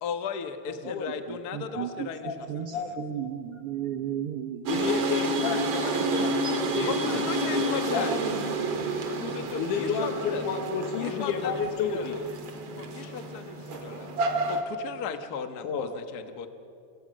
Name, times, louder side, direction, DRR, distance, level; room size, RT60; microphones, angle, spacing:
voice 1, 0.0-2.5 2.7-3.0 6.9-8.3 9.0-10.6 10.9-12.2 12.7-14.1 14.5-16.5, left 7 dB, 45° left, 8 dB, 1.3 m, -36 dB
voice 2, 1.5-2.1 2.5-4.6 6.4-6.9, right 9 dB, 70° right, 7 dB, 1.4 m, -34 dB
voice 3, 4.7-8.4 9.6-12.2 15.6-15.9, left 6 dB, 80° left, 4 dB, 2.8 m, -31 dB
sound 1, 4.7-14.6, right 2 dB, 55° right, 2.9 m, -30 dB
29.0 x 25.5 x 6.4 m, 2.6 s
omnidirectional pair, 3.5 m